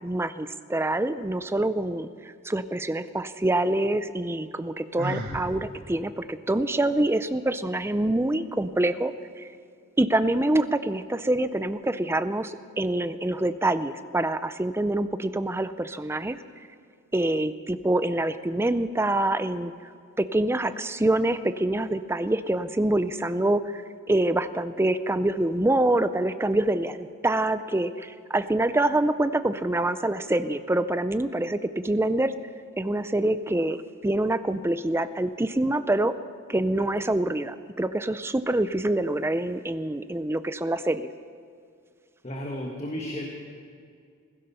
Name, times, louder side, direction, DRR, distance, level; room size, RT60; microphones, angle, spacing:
voice 1, 0.0-9.5 10.0-16.4 17.1-19.7 20.2-23.8 24.1-32.3 32.8-36.2 36.5-41.1, right 1 dB, 10° right, 12 dB, 0.5 m, -26 dB
Sigh, 5.0-5.5, equal, 50° right, 1.8 m, -32 dB
voice 2, 42.2-43.3, left 1 dB, 30° left, 0 dB, 1.5 m, -33 dB
16.0 x 15.5 x 5.6 m, 2.3 s
head